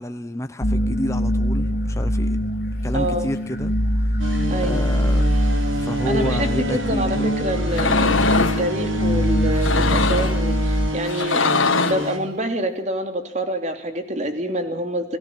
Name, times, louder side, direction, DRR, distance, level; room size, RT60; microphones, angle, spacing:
voice 1, 0.0-2.4 2.8-3.7 4.0-4.2 4.6-5.3 5.8-7.3, left 1 dB, 15° left, 8 dB, 1.0 m, -29 dB
sound 1, 0.6-10.9, equal, 55° left, 3.0 m, -22 dB
voice 2, 2.9-3.3 4.5-4.8 6.0-15.2, right 1 dB, 35° right, 6 dB, 3.2 m, -26 dB
sound 2, 4.2-12.2, right 1 dB, 80° right, 4.4 m, -29 dB
sound 3, 7.7-8.6 9.5-10.4 11.1-12.1, left 4 dB, 80° left, 1.9 m, -22 dB
29.5 x 18.0 x 7.6 m, 0.66 s
head